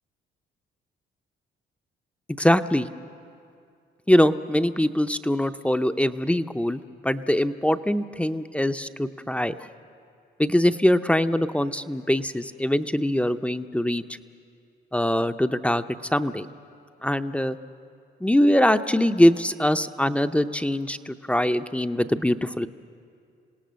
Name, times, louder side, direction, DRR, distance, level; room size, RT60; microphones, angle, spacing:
voice 1, 2.4-2.9 4.1-9.5 10.4-14.0 14.9-15.8 16.1-16.5 17.0-17.6 18.2-22.7, left 1 dB, 5° left, 10 dB, 0.6 m, -22 dB
27.5 x 17.5 x 6.4 m, 2.3 s
cardioid pair, 90°, 20 cm